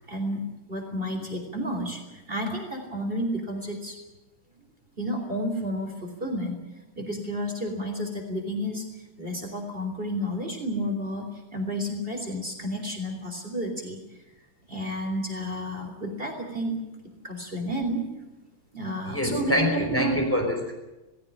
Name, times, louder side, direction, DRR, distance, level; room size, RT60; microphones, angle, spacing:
voice 1, 0.1-4.0 5.0-6.6 7.0-14.0 14.7-16.8 17.2-18.1 18.7-20.1, equal, 25° right, 2 dB, 3.7 m, -31 dB
voice 2, 19.1-20.8, left 1 dB, 5° left, 2 dB, 5.2 m, -25 dB
19.0 x 16.5 x 10.0 m, 1.0 s
omnidirectional pair, 2.2 m